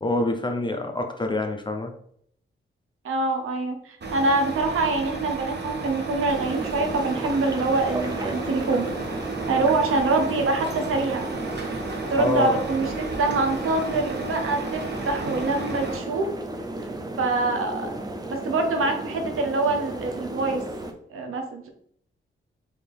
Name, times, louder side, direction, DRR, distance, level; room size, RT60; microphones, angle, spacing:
voice 1, 0.0-1.9 12.2-12.6, left 2 dB, 20° left, 4 dB, 0.6 m, -26 dB
voice 2, 3.0-8.9 9.5-11.5 12.1-16.3 17.2-17.9 18.3-20.6 21.1-21.7, right 3 dB, 90° right, 4 dB, 0.7 m, -25 dB
Truck, 4.0-16.0, right 3 dB, 55° right, 0.9 m, -33 dB
sound 1, 6.3-20.9, right 1 dB, 20° right, 0.6 m, -34 dB
4.1 x 2.8 x 3.4 m, 0.66 s
cardioid pair, 80°, 21 cm